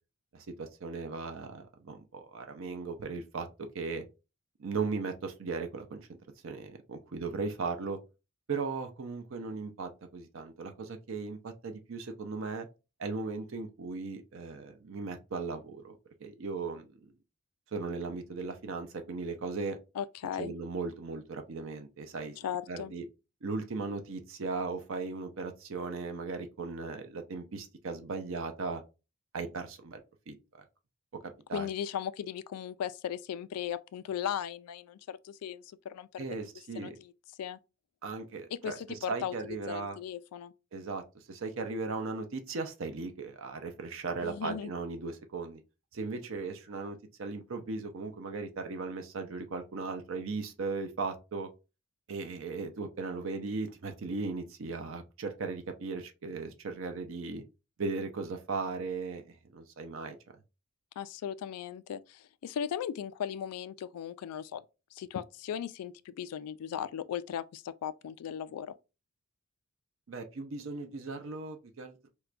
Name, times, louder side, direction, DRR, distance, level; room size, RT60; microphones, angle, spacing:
voice 1, 0.3-3.5 3.7-4.0 4.6-6.1 6.4-8.0 8.5-12.7 13.0-17.0 17.7-19.8 20.4-22.4 22.7-23.0 23.4-28.8 29.3-30.0 30.3-30.4 31.5-31.7 36.2-37.0 38.0-40.0 40.7-45.6 45.9-51.5 52.1-57.4 57.8-60.2 70.1-72.1, right 4 dB, 60° right, 0.5 m, -37 dB
voice 2, 20.0-20.5 22.4-22.9 31.5-36.3 36.7-37.1 37.4-37.6 38.5-40.5 44.2-44.7 61.0-64.6 64.9-68.7, left 9 dB, 85° left, 0.3 m, -37 dB
4.6 x 2.2 x 2.4 m
head